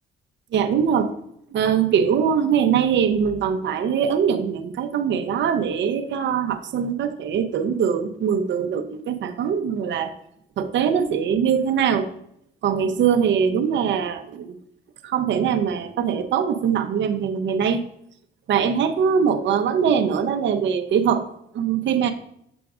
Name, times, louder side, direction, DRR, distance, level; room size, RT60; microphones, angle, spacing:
voice 1, 0.5-1.1 1.5-10.1 10.6-12.1 12.6-14.6 15.0-17.8 18.5-21.2 21.5-22.1, right 7 dB, 65° right, 7 dB, 0.7 m, -22 dB
7.0 x 5.9 x 2.4 m, 0.72 s
cardioid pair, 90°, 20 cm